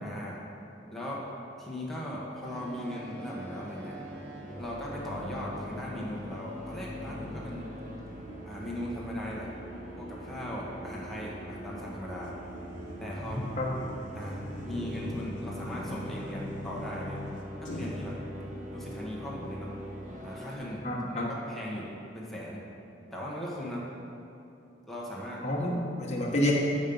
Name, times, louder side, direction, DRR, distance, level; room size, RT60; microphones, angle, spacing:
voice 1, 0.0-0.4 0.9-1.2 1.6-4.0 4.6-7.7 8.5-9.5 10.0-12.3 13.0-13.4 14.1-14.4 14.7-17.2 17.6-18.2 18.7-19.7 20.2-22.6 23.1-23.8 24.9-25.4, equal, ahead, -6 dB, 1.1 m, -38 dB
sound 1, 2.4-20.6, equal, 45° right, 1.1 m, -42 dB
sound 2, 12.3-18.1, left 2 dB, 80° left, 0.9 m, -42 dB
voice 2, 20.8-21.3 25.4-26.5, left 1 dB, 35° left, -4 dB, 1.2 m, -29 dB
7.3 x 5.2 x 5.3 m, 2.8 s
head